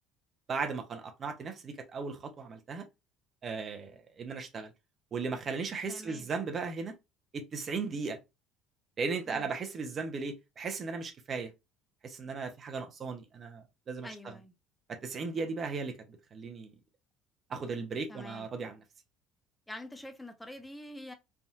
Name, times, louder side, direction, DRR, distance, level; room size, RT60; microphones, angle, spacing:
voice 1, 0.5-2.8 3.4-4.7 5.1-6.9 7.3-8.2 9.0-11.5 12.0-14.1 14.9-15.9 16.3-16.7 17.5-18.8, right 4 dB, 40° right, 0.7 m, -36 dB
voice 2, 5.9-6.3 9.3-9.5 14.0-14.5 18.1-18.5 19.7-21.1, left 1 dB, 10° left, 0.7 m, -46 dB
3.4 x 2.6 x 2.4 m
hypercardioid pair, 60°, 0 cm